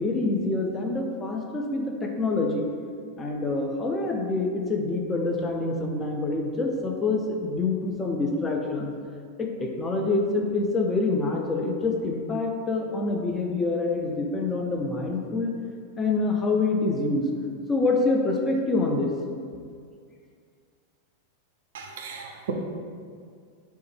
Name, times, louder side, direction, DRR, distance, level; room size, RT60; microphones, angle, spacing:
voice 1, 0.0-2.6 3.2-8.9 9.4-15.5 16.0-17.3 17.7-19.1, left 3 dB, 20° left, 1 dB, 0.4 m, -26 dB
voice 2, 21.7-22.5, right 7 dB, 60° right, 2 dB, 0.3 m, -35 dB
3.1 x 2.1 x 3.3 m, 2.1 s
figure-of-eight pair, 90°, 0 cm